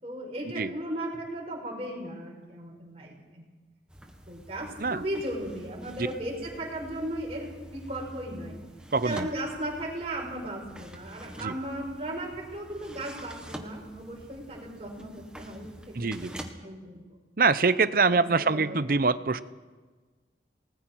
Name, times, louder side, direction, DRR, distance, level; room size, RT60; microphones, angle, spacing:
voice 1, 0.0-3.4 4.3-8.6 9.0-17.2 17.9-18.8, right 1 dB, 35° right, -2 dB, 5.7 m, -36 dB
sound 1, 3.9-16.5, equal, 5° right, 1.5 m, -46 dB
voice 2, 8.9-9.3 11.4-11.5 15.9-16.3 17.4-19.4, right 4 dB, 50° right, 14 dB, 0.7 m, -24 dB
29.0 x 19.5 x 4.7 m, 1.4 s
head